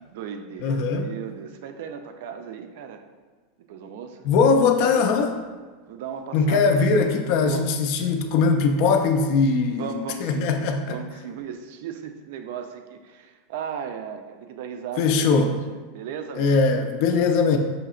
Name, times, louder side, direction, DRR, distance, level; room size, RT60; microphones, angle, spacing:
voice 1, 0.1-3.0 3.7-4.3 5.9-7.1 7.4-7.6 9.5-10.5 10.8-16.5, right 7 dB, 65° right, 6 dB, 0.4 m, -36 dB
voice 2, 0.6-1.1 4.3-5.4 6.3-9.8 10.2-11.0 15.0-15.5 16.4-17.6, left 4 dB, 55° left, 5 dB, 0.3 m, -20 dB
5.7 x 2.8 x 2.4 m, 1.4 s
supercardioid pair, 140°, 0 cm